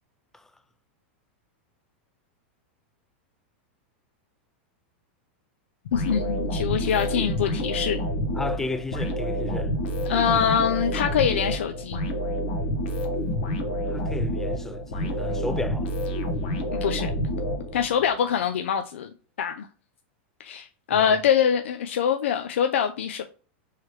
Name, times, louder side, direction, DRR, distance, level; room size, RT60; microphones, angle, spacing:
voice 1, 5.9-8.0 10.1-12.0 16.7-17.1 17.7-19.1 19.4-19.7 20.4-23.2, left 8 dB, 90° left, 0.4 m, -24 dB
sound 1, 5.9-18.1, equal, 65° left, 1.0 m, -28 dB
voice 2, 8.3-9.7 13.9-15.9 20.9-21.2, left 2 dB, 5° left, 0.3 m, -33 dB
4.6 x 3.2 x 3.0 m
supercardioid pair, 140°, 6 cm